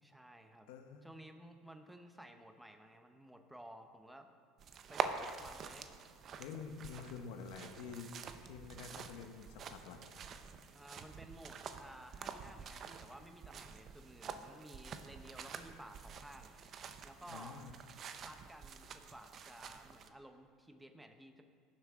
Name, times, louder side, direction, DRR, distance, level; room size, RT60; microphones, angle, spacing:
voice 1, 0.0-0.7 1.0-4.3 4.9-5.9 10.7-16.8 17.0-17.6 18.1-21.4, right 1 dB, 5° right, 5 dB, 0.9 m, -55 dB
voice 2, 0.7-1.0 6.4-8.1 8.4-10.0 17.3-17.7, left 6 dB, 80° left, 5 dB, 1.0 m, -48 dB
sound 1, 4.6-20.1, right 6 dB, 40° right, 0.7 m, -47 dB
18.0 x 7.3 x 3.7 m, 2.3 s
supercardioid pair, 115°, 0 cm